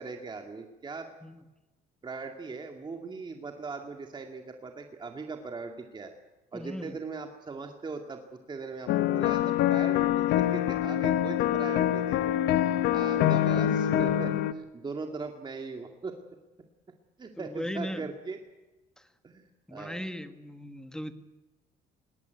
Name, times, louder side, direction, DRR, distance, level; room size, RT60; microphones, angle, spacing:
voice 1, 0.0-1.1 2.0-6.1 6.5-16.2 17.2-18.4 19.2-20.1, right 4 dB, 25° right, 4 dB, 2.2 m, -40 dB
voice 2, 6.5-7.0 17.4-18.0 19.7-21.1, equal, 5° left, 9 dB, 1.6 m, -37 dB
sound 1, 8.9-14.5, left 11 dB, 85° left, 1.2 m, -25 dB
20.0 x 18.5 x 9.4 m, 1.1 s
cardioid pair, 110°, 17 cm